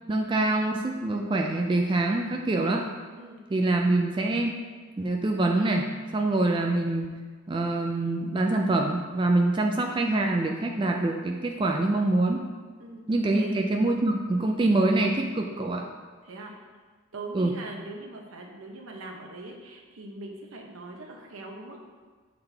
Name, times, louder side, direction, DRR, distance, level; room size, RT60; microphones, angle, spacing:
voice 1, 0.1-2.9 3.5-4.6 5.0-5.9 6.1-7.1 7.5-12.4 13.1-15.9 17.3-17.6, right 2 dB, 25° right, 2 dB, 0.3 m, -25 dB
voice 2, 16.2-16.8 17.1-21.8, right 2 dB, 85° right, 1 dB, 0.8 m, -41 dB
7.1 x 3.9 x 3.4 m, 1.5 s
head